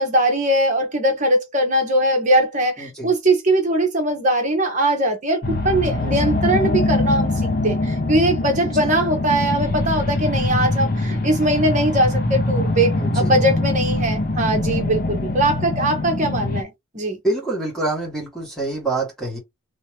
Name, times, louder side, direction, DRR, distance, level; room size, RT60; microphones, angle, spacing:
voice 1, 0.0-17.2, right 1 dB, 35° right, 1.1 m, -20 dB
voice 2, 2.8-3.1 6.0-6.4 8.6-8.9 13.0-13.4 17.2-19.4, right 2 dB, ahead, 1.5 m, -27 dB
sound 1, 5.4-16.6, left 2 dB, 40° left, 0.6 m, -23 dB
3.2 x 3.0 x 3.0 m
head